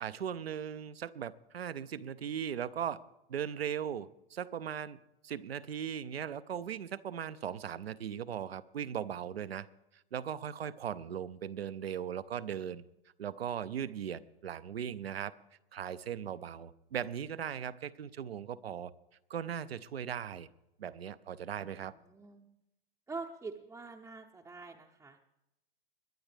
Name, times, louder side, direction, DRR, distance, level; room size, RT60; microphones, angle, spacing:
voice 1, 0.0-3.0 3.3-9.7 10.1-12.8 13.2-15.3 15.7-18.9 19.3-20.5 20.8-21.9, right 9 dB, 90° right, 14 dB, 0.6 m, -38 dB
voice 2, 22.0-22.5 23.1-25.2, right 3 dB, 10° right, 0 dB, 0.5 m, -45 dB
21.0 x 10.5 x 3.3 m, 0.90 s
hypercardioid pair, 110°, 30 cm